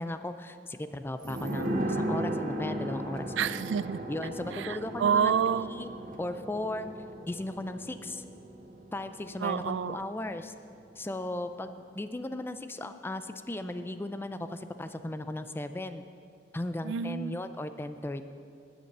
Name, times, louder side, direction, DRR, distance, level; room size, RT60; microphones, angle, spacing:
voice 1, 0.0-3.3 4.1-5.3 5.7-5.9 6.2-6.9 7.2-8.2 8.9-10.5 11.0-16.0 16.5-18.3, left 1 dB, 15° left, 10 dB, 0.4 m, -36 dB
sound 1, 1.2-10.5 10.8-10.9, right 1 dB, 50° right, 1.0 m, -36 dB
voice 2, 3.4-4.0 4.6-5.7 9.4-10.0 16.8-17.4, right 7 dB, 90° right, 16 dB, 0.3 m, -28 dB
9.7 x 8.0 x 6.6 m, 2.4 s
head